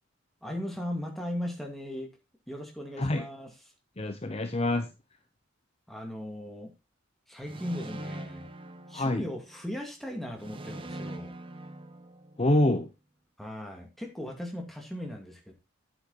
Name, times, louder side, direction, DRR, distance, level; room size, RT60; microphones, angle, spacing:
voice 1, 0.4-2.1 2.5-3.5 5.9-6.7 7.3-8.5 8.9-11.3 13.4-15.5, left 1 dB, ahead, 2 dB, 2.2 m, -38 dB
voice 2, 4.0-4.9 8.9-9.2 12.4-12.9, left 1 dB, 30° left, 7 dB, 0.8 m, -26 dB
sound 1, 7.4-9.6 10.4-12.6, right 1 dB, 25° right, 1.0 m, -42 dB
9.0 x 8.5 x 4.1 m, 0.26 s
head